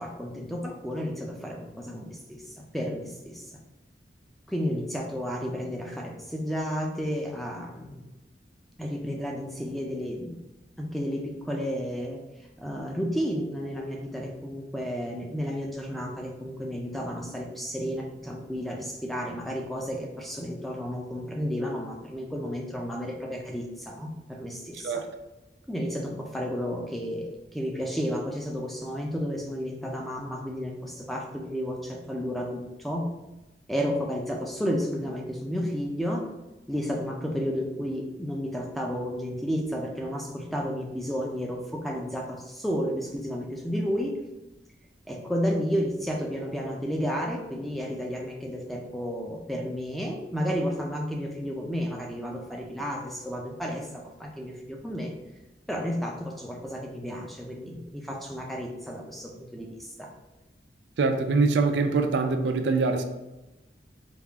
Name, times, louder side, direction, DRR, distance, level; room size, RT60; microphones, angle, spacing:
voice 1, 0.0-3.6 4.5-8.0 8.8-10.4 10.8-12.2 12.6-25.0 25.7-33.1 33.7-36.3 36.7-44.2 45.1-55.1 55.7-60.1, equal, ahead, -1 dB, 0.4 m, -32 dB
voice 2, 61.0-63.0, right 4 dB, 80° right, 6 dB, 0.4 m, -24 dB
3.5 x 2.3 x 3.4 m, 1.0 s
head